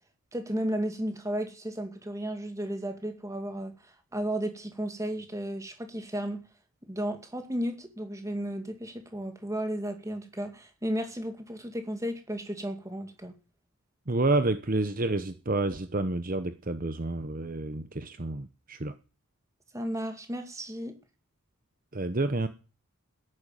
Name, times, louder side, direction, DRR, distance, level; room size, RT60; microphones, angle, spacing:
voice 1, 0.3-6.4 6.9-13.4 19.7-21.0, equal, 15° right, 2.2 m, -34 dB
voice 2, 14.1-18.9 21.9-22.5, right 2 dB, 40° right, 1.0 m, -29 dB
13.5 x 11.0 x 9.0 m
head